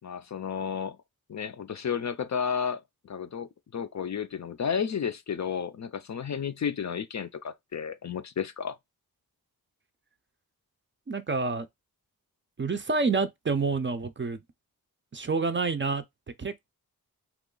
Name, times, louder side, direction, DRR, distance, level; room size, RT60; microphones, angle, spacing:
voice 1, 0.0-1.0 1.3-8.8, left 7 dB, 50° left, 0.4 m, -32 dB
voice 2, 11.1-11.7 12.6-14.4 15.1-16.0 16.4-16.7, right 4 dB, 30° right, 0.4 m, -28 dB
3.0 x 2.4 x 3.7 m
wide cardioid pair, 60°, 37 cm